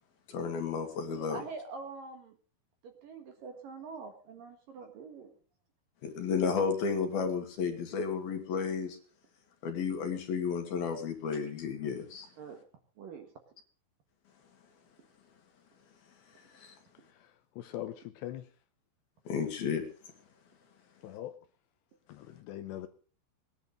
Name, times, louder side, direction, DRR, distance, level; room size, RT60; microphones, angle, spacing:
voice 1, 0.3-1.4 6.0-9.0 9.6-12.3 16.5-16.7 19.3-19.8, left 6 dB, 60° left, 3.6 m, -32 dB
voice 2, 1.1-2.4 2.8-5.3 12.4-12.6 13.0-13.3, right 4 dB, 60° right, 2.7 m, -45 dB
voice 3, 17.6-18.4 21.0-21.3 22.1-22.9, left 13 dB, 75° left, 2.8 m, -41 dB
20.0 x 11.0 x 5.3 m
omnidirectional pair, 5.4 m